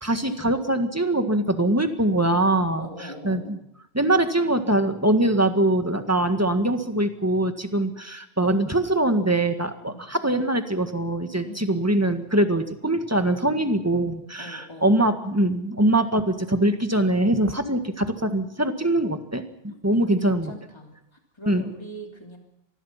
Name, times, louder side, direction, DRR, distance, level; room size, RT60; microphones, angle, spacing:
voice 1, 0.0-2.9 3.2-3.6 3.9-20.5 21.5-21.6, right 1 dB, 15° right, 7 dB, 1.7 m, -23 dB
voice 2, 2.8-3.6 9.8-10.0 11.4-11.7 14.4-14.9 20.2-20.9 21.3-22.4, equal, 20° left, 1 dB, 3.2 m, -40 dB
25.5 x 20.0 x 5.8 m, 0.79 s
omnidirectional pair, 1.2 m